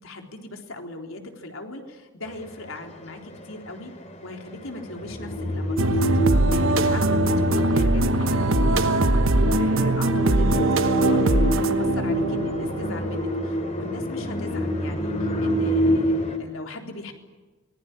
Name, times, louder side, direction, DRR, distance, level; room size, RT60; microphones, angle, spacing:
voice 1, 0.0-3.9 4.2-9.1 9.6-17.1, left 2 dB, 85° left, 3 dB, 3.9 m, -39 dB
sound 1, 3.5-16.4, equal, 35° left, 3.2 m, -26 dB
sound 2, 5.8-13.6, right 2 dB, 80° right, 1.2 m, -22 dB
24.0 x 20.5 x 10.0 m, 1.2 s
head